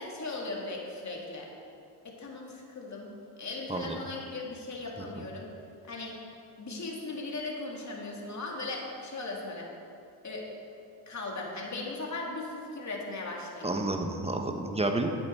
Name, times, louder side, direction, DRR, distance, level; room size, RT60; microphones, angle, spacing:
voice 1, 0.0-1.5 2.0-3.1 3.4-5.5 5.9-6.2 6.6-9.7 10.2-10.4 11.1-13.8, left 2 dB, 35° left, -2 dB, 2.5 m, -38 dB
voice 2, 13.6-15.1, right 2 dB, 15° right, 4 dB, 1.1 m, -30 dB
11.0 x 8.8 x 4.6 m, 2.5 s
cardioid pair, 80°, 47 cm